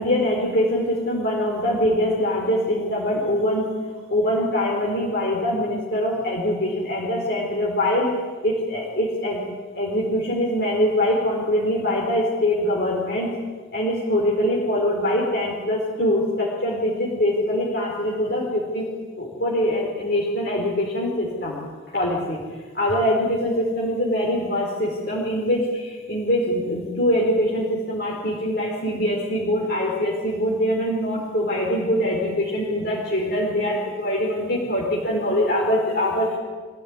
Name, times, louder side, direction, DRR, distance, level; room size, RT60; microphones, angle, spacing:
voice 1, 0.0-3.7 4.1-8.2 8.4-9.4 9.7-13.4 13.7-18.9 19.2-21.6 21.9-22.4 22.7-36.4, left 1 dB, 55° left, -3 dB, 4.5 m, -23 dB
25.0 x 16.0 x 9.8 m, 1.5 s
head